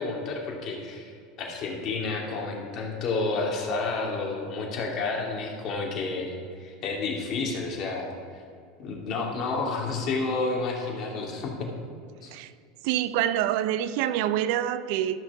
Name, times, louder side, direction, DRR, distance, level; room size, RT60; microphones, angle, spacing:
voice 1, 0.0-8.1 8.8-11.7 12.2-12.3, left 3 dB, 50° left, -1 dB, 2.7 m, -30 dB
voice 2, 12.8-15.2, right 11 dB, 65° right, 14 dB, 0.4 m, -26 dB
13.5 x 6.3 x 4.9 m, 2.3 s
hypercardioid pair, 90°, 0 cm